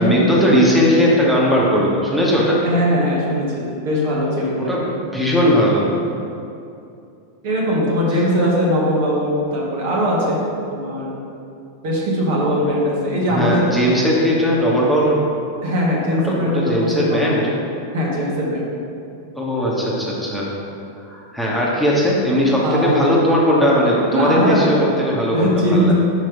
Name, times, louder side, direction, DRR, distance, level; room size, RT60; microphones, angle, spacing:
voice 1, 0.0-2.6 4.6-5.9 13.3-15.2 16.2-17.4 19.3-20.5 21.1-25.9, equal, ahead, -6 dB, 1.4 m, -18 dB
voice 2, 2.4-4.6 7.4-10.4 10.7-11.2 11.8-13.7 15.6-17.5 17.9-18.6 22.6-23.1 24.1-24.7 25.3-25.9, equal, 50° right, -4 dB, 1.6 m, -20 dB
6.2 x 5.3 x 5.4 m, 2.6 s
figure-of-eight pair, 90°, 0 cm